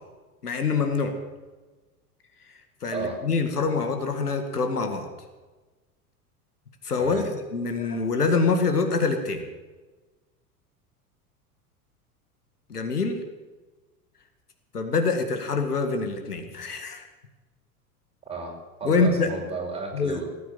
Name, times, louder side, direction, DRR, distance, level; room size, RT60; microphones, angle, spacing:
voice 1, 0.4-1.1 2.8-5.1 6.8-9.4 12.7-13.2 14.7-17.0 18.8-19.3 19.9-20.2, left 4 dB, 85° left, 6 dB, 2.0 m, -25 dB
voice 2, 2.9-3.2 7.0-7.2 18.3-20.3, right 3 dB, 15° right, -1 dB, 5.9 m, -33 dB
18.5 x 9.1 x 7.7 m, 1.2 s
figure-of-eight pair, 85°, 45 cm